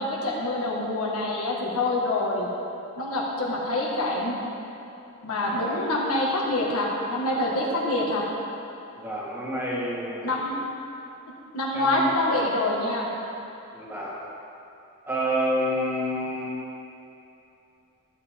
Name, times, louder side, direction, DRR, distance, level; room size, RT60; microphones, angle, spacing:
voice 1, 0.0-2.5 3.0-4.4 5.2-8.3 10.2-10.6 11.5-13.1, left 1 dB, 85° left, -3 dB, 1.6 m, -26 dB
voice 2, 5.4-5.8 9.0-10.4 11.7-12.1 13.7-14.2 15.1-16.5, equal, 10° right, -5 dB, 1.3 m, -29 dB
13.0 x 7.6 x 3.6 m, 2.8 s
head